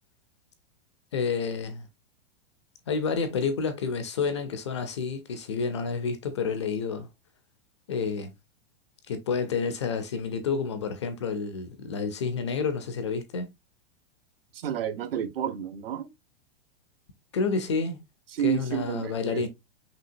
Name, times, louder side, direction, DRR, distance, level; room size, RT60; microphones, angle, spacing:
voice 1, 1.1-1.9 2.9-7.1 7.9-8.3 9.1-13.5 17.3-18.0 18.4-19.5, left 5 dB, 30° left, 0.4 m, -29 dB
voice 2, 14.5-16.1 18.3-19.5, right 9 dB, 65° right, 0.9 m, -30 dB
5.6 x 2.9 x 2.5 m
supercardioid pair, 180°, 31 cm